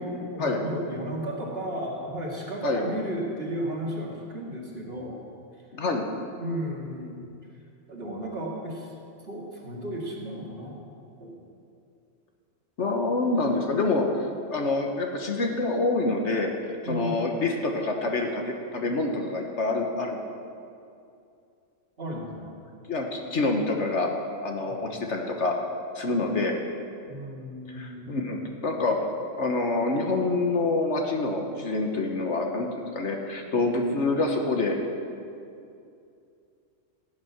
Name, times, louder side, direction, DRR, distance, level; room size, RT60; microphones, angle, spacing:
voice 1, 0.0-5.3 6.4-7.2 7.9-8.9 9.2-10.9 11.2-11.4 16.8-17.2 22.0-22.6 24.7-24.9 27.1-28.4, equal, 45° right, -3 dB, 2.4 m, -34 dB
voice 2, 5.7-6.0 12.8-14.0 14.5-16.5 16.8-20.2 22.9-24.1 24.4-25.5 25.9-26.5 27.7-32.7 32.9-34.8, left 3 dB, 60° left, 2 dB, 1.5 m, -26 dB
15.5 x 9.4 x 5.9 m, 2.5 s
omnidirectional pair, 1.4 m